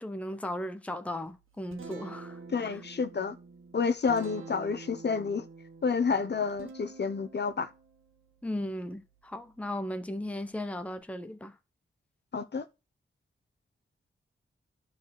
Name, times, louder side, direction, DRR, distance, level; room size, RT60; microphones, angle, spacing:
voice 1, 0.0-2.8 8.4-11.6, left 1 dB, 5° left, 0.8 m, -36 dB
Guitar, 1.3-11.0, right 4 dB, 75° right, 1.6 m, -49 dB
voice 2, 2.5-3.4 3.7-5.5 5.8-7.7 12.3-12.6, left 5 dB, 55° left, 1.0 m, -29 dB
11.0 x 4.4 x 5.9 m
wide cardioid pair, 90°, 21 cm